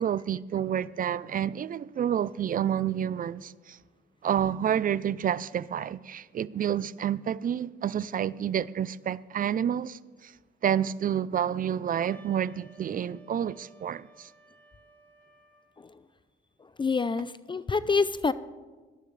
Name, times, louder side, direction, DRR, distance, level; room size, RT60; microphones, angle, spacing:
voice 1, 0.0-3.8 4.2-10.3 10.6-14.3, right 9 dB, 45° right, 0.5 m, -29 dB
Wind instrument woodwind instrument, 11.9-15.8, right 2 dB, 10° left, 3.4 m, -56 dB
voice 2, 16.8-18.3, left 4 dB, 25° left, 0.5 m, -26 dB
18.5 x 12.5 x 3.3 m
cardioid pair, 90°, 20 cm